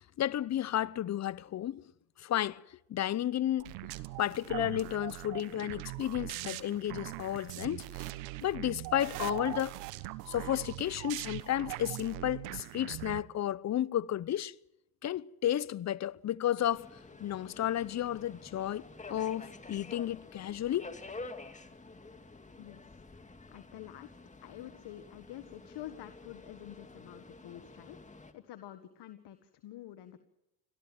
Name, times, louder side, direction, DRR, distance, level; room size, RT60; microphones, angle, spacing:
voice 1, 0.0-1.9 2.2-3.7 4.2-8.1 8.4-9.8 10.3-14.5 15.0-16.9 17.2-20.9, left 11 dB, 35° left, 0.7 m, -32 dB
sound 1, 3.6-13.2, right 18 dB, 85° right, 1.3 m, -41 dB
Subway metro underground, 16.7-28.3, left 3 dB, 15° left, 2.3 m, -50 dB
voice 2, 22.6-24.2 24.4-30.2, left 12 dB, 60° left, 1.7 m, -48 dB
25.0 x 17.5 x 7.9 m
supercardioid pair, 90°, 48 cm